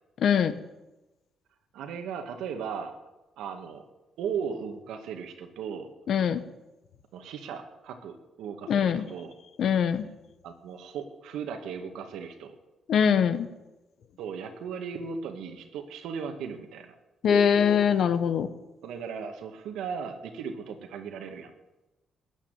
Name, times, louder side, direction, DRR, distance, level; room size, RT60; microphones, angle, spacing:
voice 1, 0.2-0.5 6.1-6.4 8.7-9.0 9.6-10.0 12.9-13.5 17.2-18.5, left 7 dB, 65° left, 12 dB, 1.1 m, -22 dB
voice 2, 1.7-2.9 3.4-3.8 4.2-5.9 7.1-9.4 10.4-12.6 14.2-17.0 18.8-21.5, right 6 dB, 85° right, 6 dB, 2.0 m, -37 dB
15.0 x 8.8 x 9.1 m, 1.0 s
cardioid pair, 90°, 0 cm